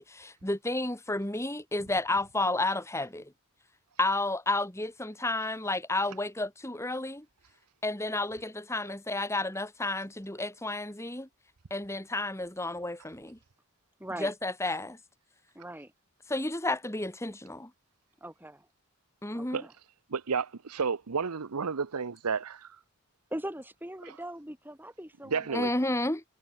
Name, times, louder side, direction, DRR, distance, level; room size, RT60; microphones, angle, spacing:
voice 1, 0.0-3.3 4.0-7.3 7.8-11.3 11.7-13.4 14.2-15.0 16.3-17.7 19.2-19.6 25.5-26.2, left 2 dB, 10° left, 1.9 m, -31 dB
voice 2, 14.0-14.3 15.6-15.9 18.2-18.7 19.3-19.7 23.3-25.9, right 1 dB, 10° right, 3.6 m, -41 dB
voice 3, 20.1-22.8 25.3-25.7, right 5 dB, 90° right, 0.8 m, -31 dB
head